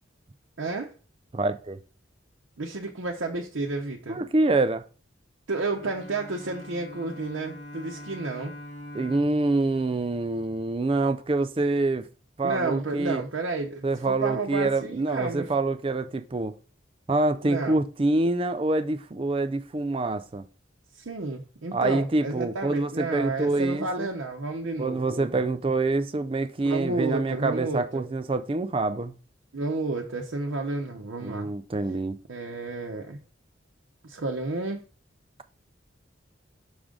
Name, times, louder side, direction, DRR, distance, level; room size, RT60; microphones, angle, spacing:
voice 1, 0.6-0.9 2.6-4.2 5.5-8.5 12.4-15.7 17.4-17.8 20.9-25.5 26.6-28.0 29.5-31.5 32.3-33.2 34.0-34.8, right 3 dB, 80° right, 0.7 m, -31 dB
voice 2, 1.3-1.8 4.1-4.8 8.9-12.1 12.4-13.2 13.8-16.5 17.1-20.4 21.7-24.1 24.8-29.2 31.2-32.2, right 2 dB, 30° right, 0.4 m, -26 dB
Bowed string instrument, 5.6-11.1, equal, 65° left, 2.3 m, -44 dB
6.1 x 5.0 x 3.8 m
head